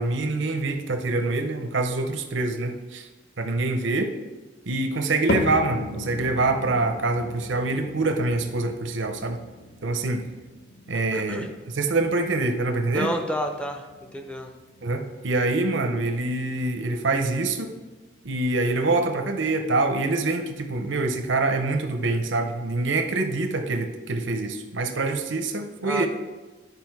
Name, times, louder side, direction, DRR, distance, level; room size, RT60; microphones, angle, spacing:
voice 1, 0.0-3.1 3.4-4.1 4.7-9.4 9.8-10.2 10.9-13.1 14.8-17.7 18.2-26.1, right 2 dB, 75° right, 6 dB, 0.8 m, -25 dB
sound 1, 5.3-21.6 21.9-22.4 23.0-23.1 24.0-24.1, left 2 dB, 60° left, 0.7 m, -38 dB
voice 2, 11.1-11.5 12.9-13.8 14.1-14.5 25.8-26.1, equal, 5° left, 4 dB, 0.6 m, -29 dB
11.0 x 5.0 x 4.7 m, 1.2 s
head